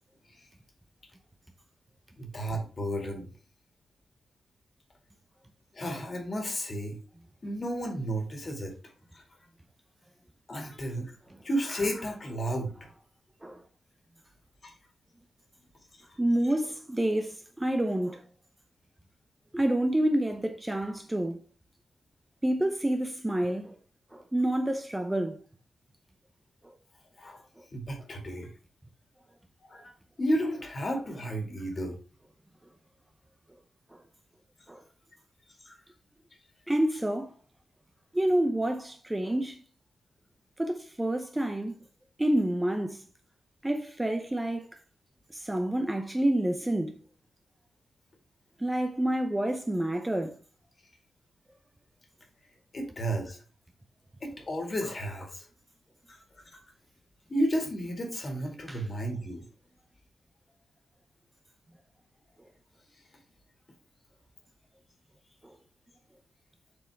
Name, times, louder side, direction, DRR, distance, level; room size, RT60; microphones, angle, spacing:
voice 1, 2.2-3.3 5.7-7.0 7.4-8.7 9.1-9.2 10.5-11.1 11.4-12.7 14.6-14.7 15.9-16.2 27.2-27.4 27.7-28.5 29.6-29.9 30.2-32.0 35.6-35.8 52.7-53.4 54.2-55.5 56.1-56.2 56.5-56.6 57.3-59.5, equal, 40° left, 2.1 m, -32 dB
voice 2, 16.2-18.2 19.5-21.4 22.4-23.7 24.1-25.4 33.9-34.0 34.7-34.8 36.7-37.3 38.1-39.6 40.6-41.8 42.2-43.0 43.6-44.8 45.3-46.9 48.6-50.4 58.7-58.8 65.4-65.6, right 1 dB, 10° right, 0.7 m, -28 dB
7.7 x 4.7 x 3.5 m
wide cardioid pair, 115°, 0 cm